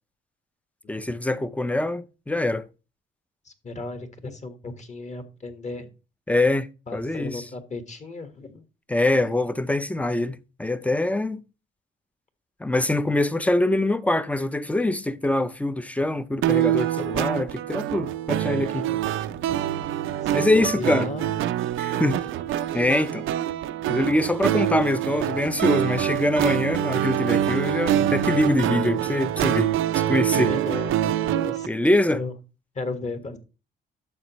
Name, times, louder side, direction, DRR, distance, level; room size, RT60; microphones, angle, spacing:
voice 1, 0.9-2.7 6.3-7.4 8.9-11.4 12.6-18.9 20.3-21.1 21.8-22.2 22.7-23.3 23.9-29.7 30.1-30.5 31.7-32.2, left 1 dB, 5° left, 0.6 m, -24 dB
voice 2, 3.4-5.9 6.9-8.6 9.1-9.4 18.7-19.2 20.2-21.3 30.4-31.8 32.1-32.3 32.7-33.4, left 3 dB, 35° left, 1.6 m, -35 dB
sound 1, 16.4-31.7, right 12 dB, 80° right, 0.6 m, -25 dB
12.0 x 7.0 x 3.1 m
cardioid pair, 90°, 20 cm